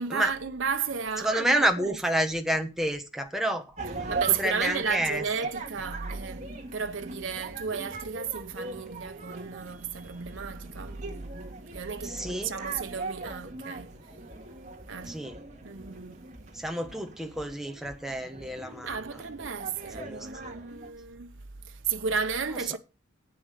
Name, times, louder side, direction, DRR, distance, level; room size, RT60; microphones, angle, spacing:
voice 1, 0.0-2.0 4.1-14.2 14.9-15.3 15.6-16.3 18.8-22.8, right 6 dB, 90° right, 0.8 m, -33 dB
voice 2, 1.2-3.6 4.4-5.2 12.0-12.5 15.1-15.4 16.5-19.0 20.0-20.3 22.7-22.8, right 1 dB, ahead, 1.2 m, -29 dB
sound 1, 3.8-20.9, right 3 dB, 40° right, 2.0 m, -41 dB
11.5 x 8.7 x 5.1 m
head